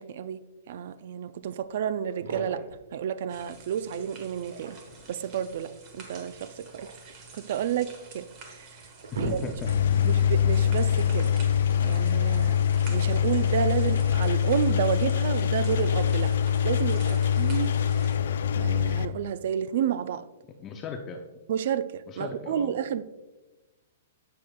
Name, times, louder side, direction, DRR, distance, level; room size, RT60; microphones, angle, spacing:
voice 1, 0.0-2.7 2.9-4.8 5.1-9.4 10.0-11.4 11.8-12.6 12.9-16.4 16.6-18.0 18.6-20.3 21.5-23.0, right 9 dB, 60° right, 0.4 m, -31 dB
sound 1, 1.7-1.8 2.1-2.8 4.3-5.1 6.4-7.8 8.4-8.5 8.8-10.0, right 3 dB, 80° right, 1.1 m, -38 dB
sound 2, 3.3-18.2, right 3 dB, 35° right, 1.2 m, -49 dB
voice 2, 9.1-10.1 20.6-21.2 22.1-22.8, left 4 dB, 25° left, 0.5 m, -37 dB
Engine, 9.6-19.1, left 9 dB, 75° left, 0.4 m, -24 dB
7.6 x 7.1 x 2.3 m
hypercardioid pair, 145°, 0 cm